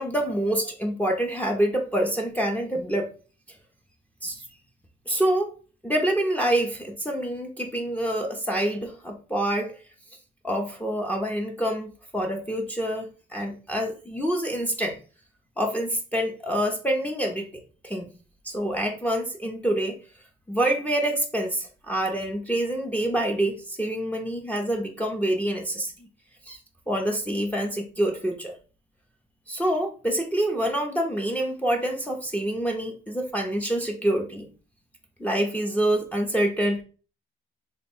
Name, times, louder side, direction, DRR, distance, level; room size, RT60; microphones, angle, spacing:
voice 1, 0.0-3.1 4.2-4.4 5.1-5.5 5.8-9.7 10.4-15.0 15.6-17.5 17.8-18.1 18.4-20.0 20.5-26.1 26.5-26.6 26.9-28.5 29.5-34.5 35.2-36.8, right 1 dB, 5° left, 1 dB, 0.6 m, -26 dB
3.2 x 2.2 x 4.3 m, 0.37 s
cardioid pair, 90°, 20 cm